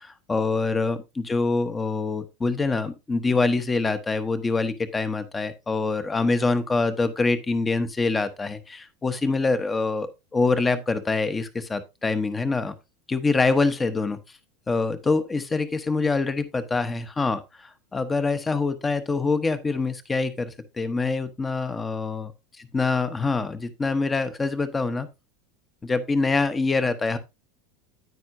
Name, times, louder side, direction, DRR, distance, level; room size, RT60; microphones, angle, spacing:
voice 1, 0.0-12.7 13.1-14.2 14.7-22.3 22.6-25.1 25.8-27.2, left 3 dB, 15° left, 12 dB, 0.9 m, -25 dB
9.3 x 8.9 x 2.6 m, 0.22 s
supercardioid pair, 145°, 0 cm